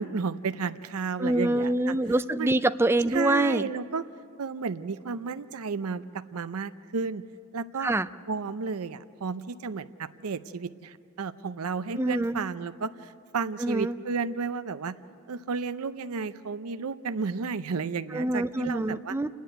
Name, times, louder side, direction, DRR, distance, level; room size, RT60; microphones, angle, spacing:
voice 1, 0.0-2.0 2.4-2.6 3.1-4.0 4.4-7.2 7.5-7.9 8.3-15.0 15.3-19.1, right 5 dB, 80° right, 12 dB, 0.6 m, -32 dB
voice 2, 1.2-3.6 7.8-8.1 12.0-12.4 13.6-13.9 18.1-19.3, right 1 dB, 10° right, 11 dB, 0.4 m, -25 dB
30.0 x 10.5 x 9.3 m, 2.6 s
head